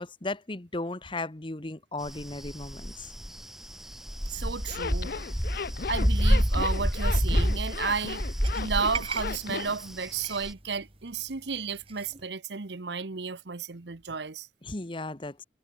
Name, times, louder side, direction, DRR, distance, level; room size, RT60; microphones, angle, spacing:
voice 1, 0.0-3.1 14.6-15.4, left 2 dB, 30° left, 1.2 m, -36 dB
sound 1, 2.0-10.5, equal, ahead, 0.8 m, -28 dB
voice 2, 4.3-5.1 5.9-8.2 8.5-14.5, right 5 dB, 75° right, 1.1 m, -33 dB
Zipper (clothing), 4.6-9.8, left 5 dB, 55° left, 0.5 m, -36 dB
sound 2, 7.1-12.3, right 6 dB, 30° right, 2.6 m, -43 dB
head